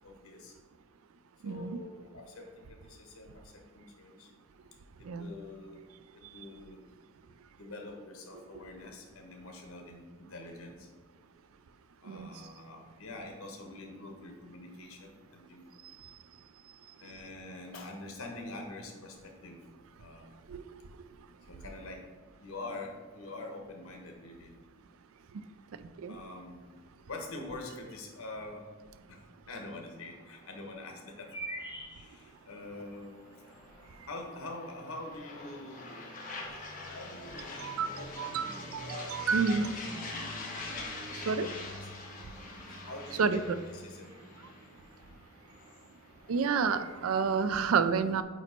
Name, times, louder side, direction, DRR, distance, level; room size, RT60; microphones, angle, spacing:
voice 1, 0.0-0.5 1.4-4.3 5.0-5.9 6.1-6.8 7.6-10.9 12.0-15.8 17.0-19.6 20.0-20.4 21.4-22.0 22.4-24.5 26.1-26.6 27.1-28.7 29.1-29.2 29.5-31.3 32.0-33.2 34.1-36.1 36.9-39.3 40.2-40.4 40.7-41.5 42.0-42.2 42.9-43.4 43.7-44.2, left 2 dB, 85° left, 2 dB, 1.2 m, -45 dB
voice 2, 1.4-1.8 5.0-5.3 12.0-12.3 20.5-20.6 26.0-26.2 37.6-39.8 41.1-41.5 43.2-43.6 46.3-48.2, right 5 dB, 85° right, 12 dB, 0.4 m, -30 dB
sound 1, 29.5-36.2, right 1 dB, 20° left, 1.1 m, -49 dB
sound 2, 32.6-47.5, left 2 dB, 40° left, 1.1 m, -44 dB
8.4 x 3.0 x 4.4 m, 1.5 s
head